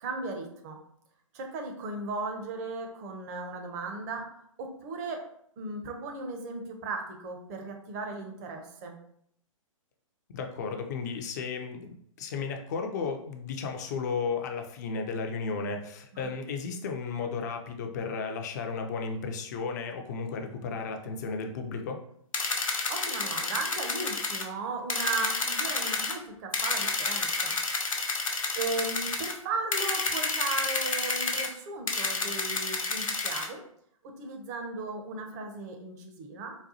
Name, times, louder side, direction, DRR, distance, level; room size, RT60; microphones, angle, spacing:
voice 1, 0.0-0.8 1.3-4.3 4.6-5.2 5.6-8.9 16.1-16.3 22.5-28.0 28.5-33.6 34.0-36.6, right 3 dB, 30° right, 3 dB, 0.6 m, -36 dB
voice 2, 10.3-22.0, left 5 dB, 30° left, 4 dB, 0.4 m, -34 dB
sound 1, 22.3-24.5 24.9-26.1 26.5-29.3 29.7-31.5 31.9-33.5, left 3 dB, 75° left, 0.6 m, -30 dB
4.0 x 2.2 x 2.7 m, 0.68 s
figure-of-eight pair, 120°, 17 cm